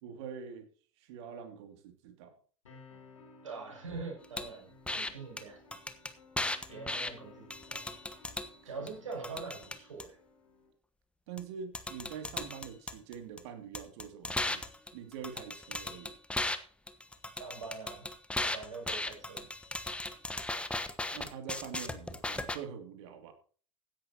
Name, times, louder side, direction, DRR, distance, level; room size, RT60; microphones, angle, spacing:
voice 1, 0.0-0.7 1.0-2.4 8.6-8.7 11.3-14.6 14.9-16.2 21.1-23.3, right 7 dB, 60° right, 7 dB, 2.7 m, -45 dB
sound 1, 2.7-10.7, left 3 dB, 80° left, 4.3 m, -57 dB
voice 2, 3.4-5.6 6.7-7.9 8.6-10.2 17.4-18.1 18.4-19.5, right 4 dB, 75° right, 0 dB, 6.7 m, -43 dB
sound 2, 4.4-4.5 4.9-5.1 5.4-5.5 5.7-7.1 7.5-8.5 8.9-10.0 11.4-11.5 11.7-13.4 13.7-16.6 16.9-22.6, left 2 dB, 5° left, 1.2 m, -36 dB
16.0 x 11.0 x 2.9 m, 0.43 s
figure-of-eight pair, 75°, 16 cm